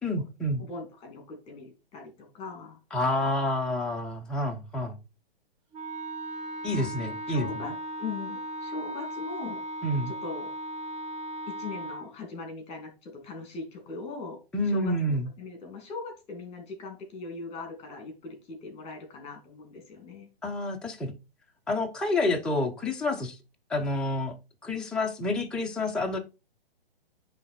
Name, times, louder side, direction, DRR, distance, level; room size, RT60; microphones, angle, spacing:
voice 1, 0.0-0.6 2.9-5.0 6.6-7.7 9.8-10.1 14.5-15.3 20.4-21.1 21.7-23.4 23.7-24.3 24.6-26.2, left 1 dB, 5° left, 1 dB, 0.5 m, -28 dB
voice 2, 0.6-2.8 6.7-6.9 7.3-9.6 10.1-10.5 11.5-14.4 14.6-20.3, left 4 dB, 20° left, 4 dB, 2.4 m, -40 dB
Wind instrument woodwind instrument, 5.7-12.1, right 1 dB, 25° right, 0.9 m, -37 dB
9.5 x 3.3 x 4.3 m, 0.29 s
hypercardioid pair, 130°, 30 cm